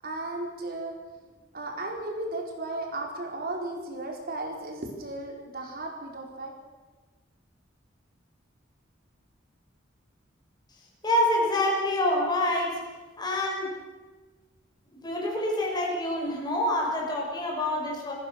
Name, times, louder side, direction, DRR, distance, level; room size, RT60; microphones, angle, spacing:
voice 1, 0.0-0.9 1.5-6.5, right 2 dB, 50° right, 2 dB, 4.3 m, -35 dB
voice 2, 11.0-12.8 13.2-13.7 14.9-18.1, left 1 dB, 20° left, -2 dB, 6.2 m, -26 dB
27.5 x 14.5 x 6.6 m, 1.3 s
head